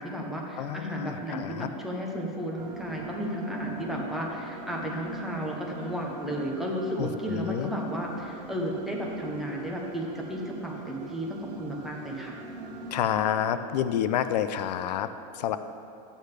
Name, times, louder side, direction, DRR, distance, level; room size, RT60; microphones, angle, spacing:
voice 1, 0.0-12.3, equal, ahead, -2 dB, 0.6 m, -33 dB
voice 2, 0.6-1.7 7.0-7.7 12.9-15.6, left 10 dB, 75° left, 12 dB, 0.5 m, -29 dB
sound 1, 2.6-13.4, right 4 dB, 80° right, 1.5 m, -43 dB
11.5 x 8.7 x 3.2 m, 2.7 s
supercardioid pair, 180°, 21 cm